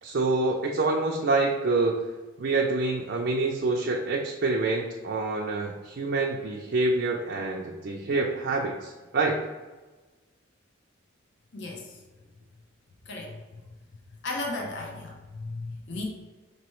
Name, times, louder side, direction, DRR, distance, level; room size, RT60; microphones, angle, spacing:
voice 1, 0.0-2.0 2.4-9.4, right 3 dB, 50° right, -1 dB, 0.4 m, -26 dB
voice 2, 11.5-12.0 13.1-13.6 14.2-16.0, left 2 dB, 55° left, 0 dB, 0.7 m, -35 dB
5.4 x 3.0 x 3.0 m, 1.2 s
head